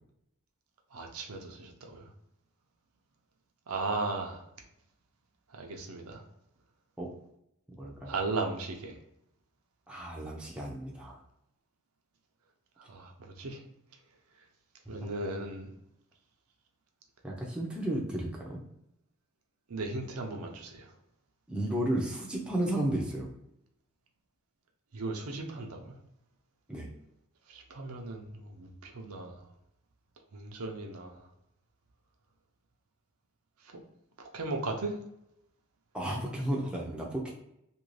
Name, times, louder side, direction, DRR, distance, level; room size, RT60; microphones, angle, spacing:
voice 1, 0.9-2.1 3.7-4.4 5.5-6.2 8.1-9.0 12.9-13.6 14.9-15.7 19.7-20.9 24.9-25.9 27.5-29.4 30.3-31.2 34.2-35.0, right 3 dB, 80° right, 3 dB, 0.6 m, -36 dB
voice 2, 7.8-8.1 9.9-11.2 17.2-18.6 21.5-23.3 26.7-26.9 35.9-37.3, right 1 dB, 5° right, -3 dB, 0.5 m, -33 dB
2.8 x 2.6 x 3.1 m, 0.80 s
head